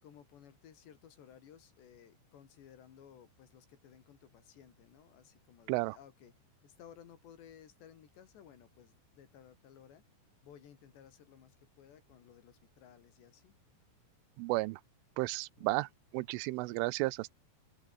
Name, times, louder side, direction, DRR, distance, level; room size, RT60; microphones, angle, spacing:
voice 1, 0.0-6.3 6.6-10.0 10.4-13.5 15.6-15.9, left 9 dB, 65° left, 4.7 m, -58 dB
voice 2, 14.4-14.8 15.2-17.3, right 22 dB, 90° right, 3.2 m, -33 dB
open air
omnidirectional pair, 5.5 m